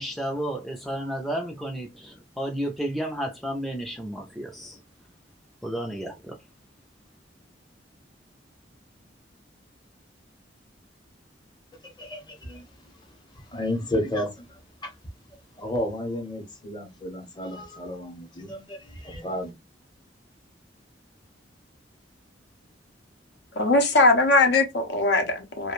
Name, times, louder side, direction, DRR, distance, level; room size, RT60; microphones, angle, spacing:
voice 1, 0.0-4.8 5.6-6.4, right 1 dB, ahead, 0.4 m, -32 dB
voice 2, 11.8-12.6 13.3-14.9 15.6-19.5, left 1 dB, 25° left, 0.7 m, -32 dB
voice 3, 23.6-25.7, left 2 dB, 65° left, 0.6 m, -20 dB
2.4 x 2.1 x 2.9 m
head